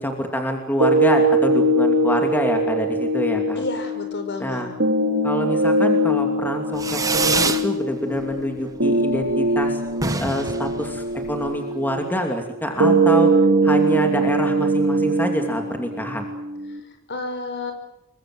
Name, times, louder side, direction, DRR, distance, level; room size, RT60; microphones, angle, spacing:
voice 1, 0.0-3.6 4.4-4.7 5.2-9.8 10.2-13.3 13.6-16.3, equal, 10° left, 3 dB, 2.8 m, -26 dB
sound 1, 0.8-16.8, right 2 dB, 60° right, 3.2 m, -21 dB
voice 2, 3.6-4.7 17.1-17.7, left 2 dB, 55° left, 7 dB, 5.4 m, -30 dB
Fireworks, 6.8-7.7 8.0-8.6 8.9-9.0 9.2-9.3 9.6-9.7 9.9-11.6, right 3 dB, 15° right, 1.4 m, -25 dB
27.0 x 23.5 x 7.8 m, 0.91 s
head